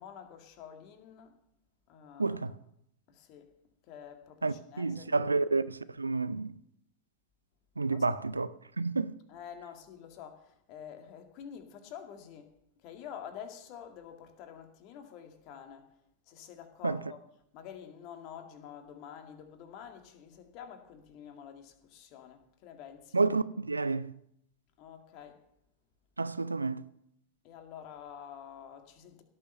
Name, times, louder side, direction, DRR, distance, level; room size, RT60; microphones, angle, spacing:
voice 1, 0.0-1.4 1.9-2.4 3.1-3.5 3.9-5.4 7.9-8.2 9.3-12.5 12.8-15.9 16.3-17.2 17.5-23.2 24.8-25.4 27.4-29.2, left 8 dB, 40° left, 2.0 m, -48 dB
voice 2, 2.2-2.5 4.4-6.5 7.8-8.5 8.8-9.1 16.8-17.0 23.1-24.1 26.2-26.9, right 3 dB, 80° right, 0.5 m, -30 dB
17.0 x 7.0 x 6.8 m
figure-of-eight pair, 90°, 0 cm